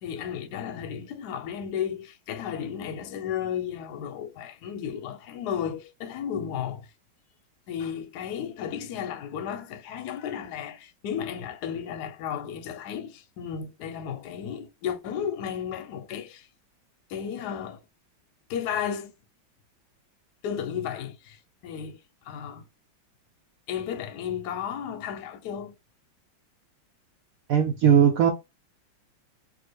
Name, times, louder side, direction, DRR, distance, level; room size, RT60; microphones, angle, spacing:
voice 1, 0.0-6.9 7.7-16.5 17.1-17.8 18.5-19.1 20.4-22.0 22.2-22.7 23.7-25.7, left 8 dB, 65° left, 1.1 m, -33 dB
voice 2, 27.5-28.3, right 8 dB, 80° right, 0.7 m, -18 dB
3.7 x 2.5 x 3.2 m
omnidirectional pair, 2.2 m